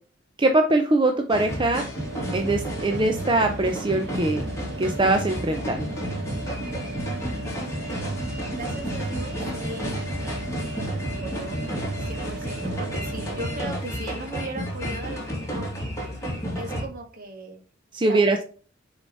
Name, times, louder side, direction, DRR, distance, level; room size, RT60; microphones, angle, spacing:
voice 1, 0.4-1.9 2.3-4.4 4.8-5.9 17.9-18.4, right 2 dB, 25° right, 5 dB, 0.6 m, -22 dB
sound 1, 1.3-16.8, equal, 15° left, 2.8 m, -31 dB
sound 2, 1.9-13.7, right 2 dB, 65° right, 1.1 m, -37 dB
voice 2, 7.8-8.2 8.5-11.7 12.0-15.9 16.5-17.6 18.0-18.4, right 2 dB, 50° right, 4 dB, 1.6 m, -38 dB
6.6 x 5.0 x 4.0 m, 0.39 s
head